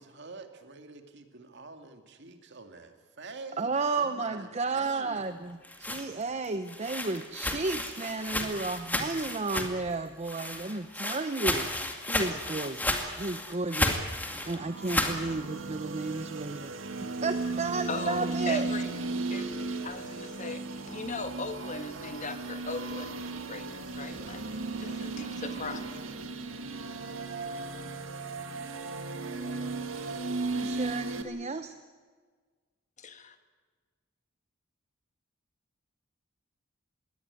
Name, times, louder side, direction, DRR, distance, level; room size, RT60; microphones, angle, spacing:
voice 1, 0.0-5.4, right 3 dB, 60° right, 6 dB, 2.3 m, -46 dB
voice 2, 3.6-11.7 12.1-18.7 30.5-31.7, right 3 dB, 35° right, 9 dB, 0.8 m, -33 dB
sound 1, 5.4-9.9 10.2-15.2, left 1 dB, 10° left, 2.2 m, -33 dB
sound 2, 14.3-31.2, right 3 dB, 80° right, 2.0 m, -36 dB
voice 3, 17.9-18.9 19.3-23.2 23.5-26.0 33.0-33.4, left 3 dB, 40° left, 8 dB, 1.6 m, -39 dB
21.5 x 18.0 x 9.8 m, 1.5 s
head